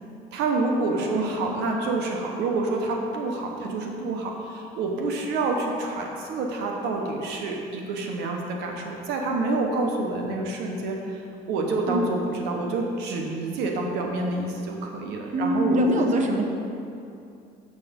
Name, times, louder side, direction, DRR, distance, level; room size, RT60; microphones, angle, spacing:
voice 1, 0.3-11.2 11.5-16.1, right 3 dB, 90° right, 1 dB, 1.1 m, -28 dB
voice 2, 15.3-16.4, equal, 45° right, 3 dB, 1.1 m, -23 dB
7.3 x 6.7 x 5.2 m, 2.6 s
cardioid pair, 110°, 17 cm